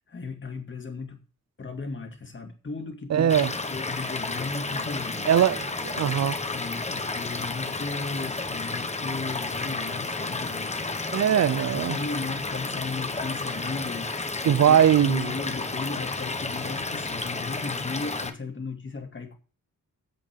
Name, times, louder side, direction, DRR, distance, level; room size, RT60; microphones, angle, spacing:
voice 1, 0.1-1.2 1.6-3.3 3.7-5.3 6.5-10.8 11.6-19.4, left 4 dB, 35° left, 2.2 m, -36 dB
voice 2, 3.1-3.5 5.3-6.4 11.1-12.0 14.4-15.3, right 9 dB, 55° right, 0.5 m, -21 dB
Stream / Liquid, 3.3-18.3, left 3 dB, 20° left, 1.0 m, -32 dB
8.7 x 7.8 x 6.8 m
wide cardioid pair, 150°, 33 cm